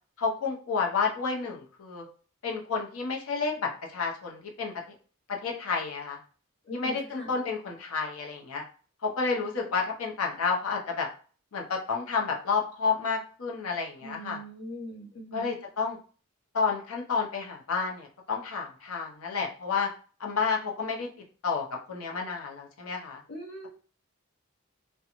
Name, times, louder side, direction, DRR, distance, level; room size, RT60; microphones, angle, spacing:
voice 1, 0.2-2.1 2.4-4.7 5.4-6.2 6.7-8.6 9.0-11.1 11.5-14.4 15.3-16.0 16.5-19.9 20.2-21.1 21.4-23.2, left 5 dB, 85° left, 0 dB, 0.6 m, -30 dB
voice 2, 6.7-7.3 14.0-15.5 23.3-23.7, equal, 55° left, -4 dB, 1.2 m, -41 dB
2.5 x 2.2 x 2.9 m, 0.40 s
head